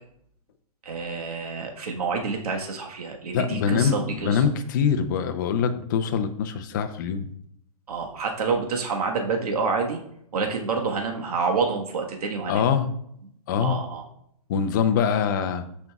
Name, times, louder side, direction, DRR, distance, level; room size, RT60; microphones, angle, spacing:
voice 1, 0.8-4.4 7.9-10.0 10.3-12.6 13.6-14.0, right 4 dB, 80° right, 1 dB, 1.5 m, -28 dB
voice 2, 3.3-7.3 12.5-12.9 13.5-13.8 14.5-15.6, left 7 dB, 30° left, 9 dB, 0.6 m, -24 dB
14.0 x 5.3 x 2.4 m, 0.71 s
hypercardioid pair, 165°, 19 cm